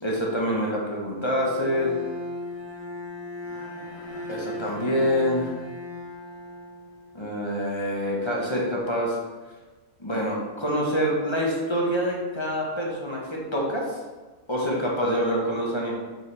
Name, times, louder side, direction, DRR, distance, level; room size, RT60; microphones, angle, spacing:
voice 1, 0.0-1.9 4.3-5.5 7.1-9.2 10.0-14.0 14.5-15.9, equal, 25° left, -3 dB, 1.0 m, -26 dB
Bowed string instrument, 1.4-7.4, left 1 dB, 85° left, 1.8 m, -37 dB
6.7 x 4.6 x 3.3 m, 1.3 s
omnidirectional pair, 1.4 m